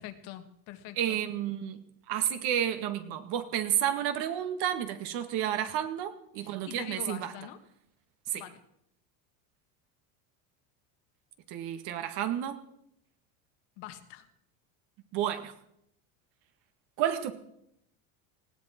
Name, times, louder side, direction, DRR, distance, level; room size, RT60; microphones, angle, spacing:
voice 1, 0.0-1.2 6.4-7.6 8.3-8.6 13.8-14.3, left 12 dB, 65° left, 7 dB, 1.8 m, -44 dB
voice 2, 1.0-1.8 2.1-7.3 8.3-8.4 11.5-12.6 15.1-15.5 17.0-17.3, right 10 dB, 60° right, 8 dB, 2.0 m, -31 dB
19.5 x 16.0 x 4.5 m, 0.77 s
supercardioid pair, 120°, 44 cm